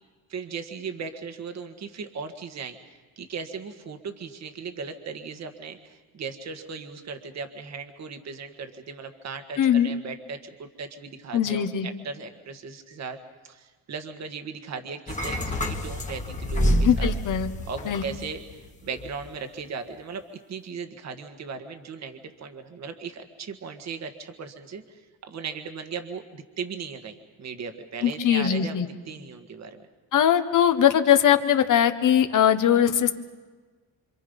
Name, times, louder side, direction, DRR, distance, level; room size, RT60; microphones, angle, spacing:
voice 1, 0.3-13.2 13.4-17.1 17.7-18.4 18.8-20.2 20.5-29.9, right 5 dB, 45° right, 7 dB, 1.7 m, -37 dB
voice 2, 9.6-9.9 11.3-11.9 16.8-17.5 17.9-18.0 28.0-28.9 30.1-33.1, left 9 dB, 55° left, 9 dB, 1.5 m, -21 dB
sound 1, 15.1-18.5 18.9-19.1, equal, 20° left, 1.8 m, -27 dB
27.5 x 26.0 x 5.4 m, 1.4 s
cardioid pair, 150°, 38 cm